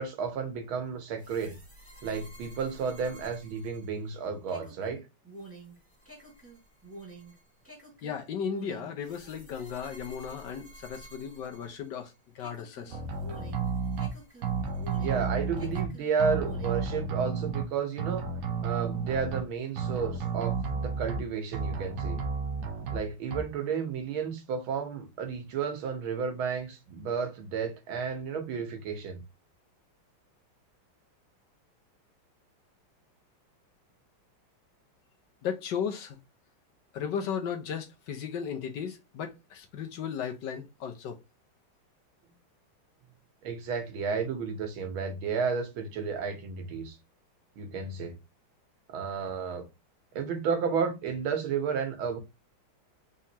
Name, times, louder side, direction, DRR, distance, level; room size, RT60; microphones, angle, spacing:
voice 1, 0.0-1.6 2.0-5.0 15.0-18.3 18.6-22.2 22.9-29.2 43.4-47.0 47.6-48.1 48.9-49.7 50.1-52.2, right 6 dB, 80° right, 1.9 m, -32 dB
sound 1, 1.2-12.1 12.4-15.3 15.6-16.9, right 2 dB, 5° right, 1.6 m, -49 dB
voice 2, 8.0-13.0 35.4-36.2 36.9-41.2, left 7 dB, 65° left, 1.3 m, -35 dB
sound 2, 12.9-14.1 14.4-15.9 16.2-17.6 18.0-19.4 19.8-21.2 21.5-23.0 23.3-23.4, right 5 dB, 55° right, 0.9 m, -32 dB
4.3 x 3.7 x 2.7 m
omnidirectional pair, 2.2 m